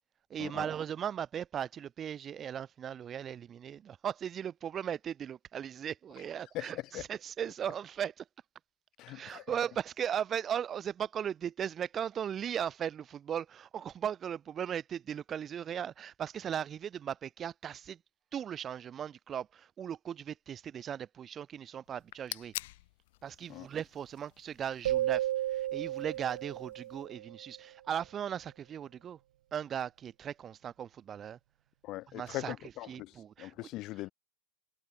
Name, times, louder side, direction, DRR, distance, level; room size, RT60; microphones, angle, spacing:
voice 1, 0.3-8.2 9.1-18.0 18.3-22.5 23.2-29.2 29.5-31.4 32.1-32.6 32.9-33.7, right 9 dB, 20° right, 0.8 m, -37 dB
voice 2, 6.5-7.0 9.0-9.5 23.5-23.7 31.8-34.1, left 18 dB, 30° left, 0.5 m, -41 dB
sound 1, 21.9-27.1, left 19 dB, 55° left, 1.5 m, -48 dB
sound 2, 24.8-27.5, right 13 dB, 75° right, 0.8 m, -33 dB
supercardioid pair, 160°, 0 cm